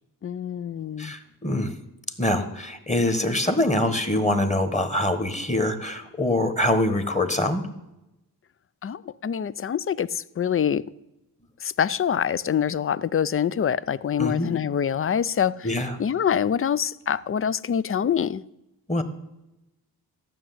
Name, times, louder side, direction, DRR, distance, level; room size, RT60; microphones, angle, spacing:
voice 1, 0.2-1.1 8.8-10.8 11.6-18.4, left 8 dB, 35° left, 0.4 m, -25 dB
voice 2, 1.0-1.7 2.2-7.6 14.2-14.5 15.6-16.0 18.9-19.0, left 1 dB, 20° left, 1.4 m, -24 dB
14.0 x 6.4 x 9.3 m
wide cardioid pair, 90°, 38 cm